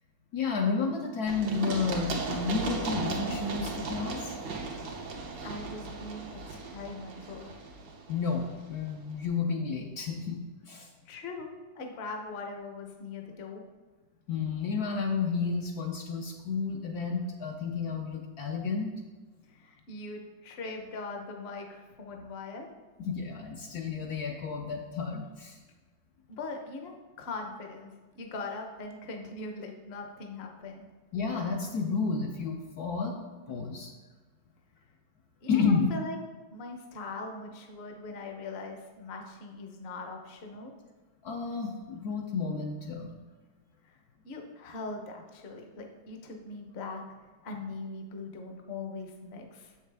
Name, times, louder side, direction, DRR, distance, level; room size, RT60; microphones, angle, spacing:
voice 1, 0.3-4.3 8.1-10.9 14.3-18.9 23.0-25.6 31.1-33.9 35.5-35.9 41.2-43.2, left 5 dB, 70° left, 1 dB, 1.1 m, -31 dB
Run, 1.3-8.9, right 4 dB, 90° right, 1.6 m, -36 dB
voice 2, 5.4-7.5 11.1-11.5 11.7-13.6 19.5-22.7 26.3-30.9 35.4-36.2 36.5-40.7 43.8-44.0 44.2-47.0 47.4-49.7, left 3 dB, 45° left, 3 dB, 0.9 m, -41 dB
7.5 x 6.5 x 3.4 m, 1.3 s
omnidirectional pair, 1.9 m